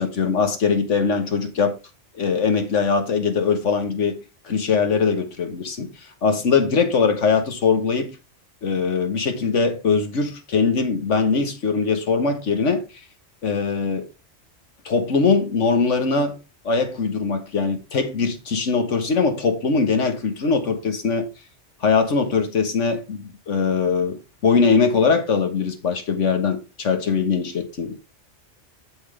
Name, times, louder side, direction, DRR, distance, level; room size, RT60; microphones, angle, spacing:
voice 1, 0.0-1.8 2.1-4.2 4.5-5.9 6.2-8.2 8.6-12.8 13.4-14.1 14.9-16.4 16.7-21.3 21.8-28.0, left 5 dB, 90° left, 1.7 m, -21 dB
7.9 x 7.2 x 3.4 m
omnidirectional pair, 1.2 m